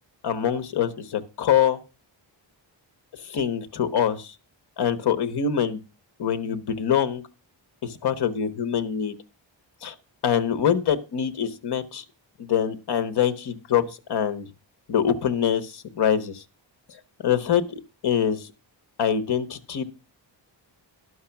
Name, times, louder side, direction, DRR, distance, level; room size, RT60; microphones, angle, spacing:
voice 1, 0.2-1.8 3.1-4.3 4.8-5.8 6.2-7.2 7.8-9.1 9.8-9.9 10.2-12.0 12.4-14.5 14.9-16.4 17.2-18.5 19.0-19.8, left 8 dB, 55° left, 11 dB, 1.1 m, -24 dB
11.5 x 6.1 x 5.7 m, 0.31 s
wide cardioid pair, 170°, 46 cm